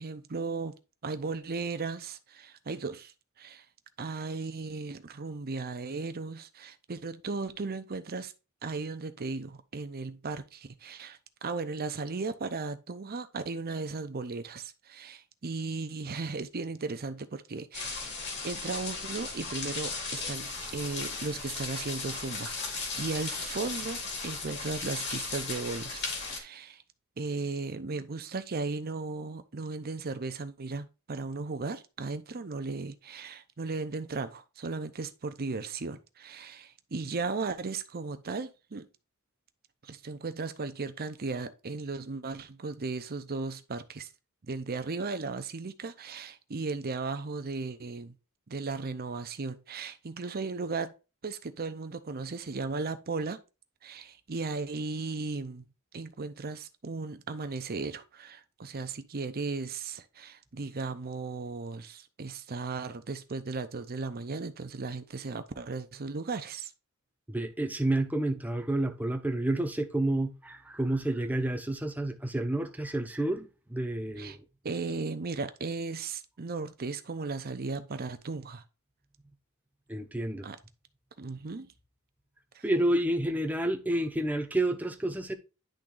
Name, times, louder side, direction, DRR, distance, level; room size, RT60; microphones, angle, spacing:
voice 1, 0.0-3.6 4.0-8.3 8.6-18.1 18.4-24.0 24.2-26.8 27.2-38.9 39.8-44.1 44.4-48.2 48.5-50.9 51.2-53.4 53.8-55.6 55.9-66.7 74.2-74.4 74.6-78.6 80.4-80.6 81.2-81.7 82.5-82.6, right 4 dB, 45° right, 0.7 m, -36 dB
sound 1, 17.7-26.4, left 4 dB, 55° left, 2.1 m, -36 dB
voice 2, 67.3-74.4 79.9-80.5 82.6-85.3, right 1 dB, 5° right, 0.8 m, -30 dB
10.5 x 3.6 x 3.8 m
head